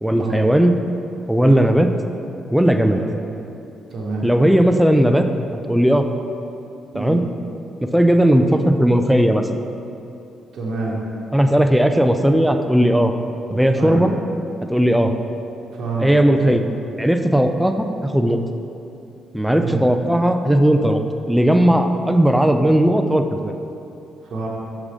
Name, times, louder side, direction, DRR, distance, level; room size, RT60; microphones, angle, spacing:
voice 1, 0.0-0.8 1.3-1.9 2.5-3.0 4.2-5.3 5.7-6.1 6.9-7.2 7.9-9.6 11.3-13.1 13.5-14.1 14.7-15.1 16.0-16.7 17.0-18.4 19.3-23.6, right 1 dB, 5° right, 6 dB, 0.3 m, -16 dB
voice 2, 3.9-4.3 6.9-7.2 10.5-11.0 13.7-14.1 15.7-16.1 16.4-16.5 19.5-19.8 24.2-24.5, right 3 dB, 60° right, -5 dB, 1.0 m, -27 dB
6.3 x 3.7 x 5.0 m, 2.7 s
cardioid pair, 90°, 0 cm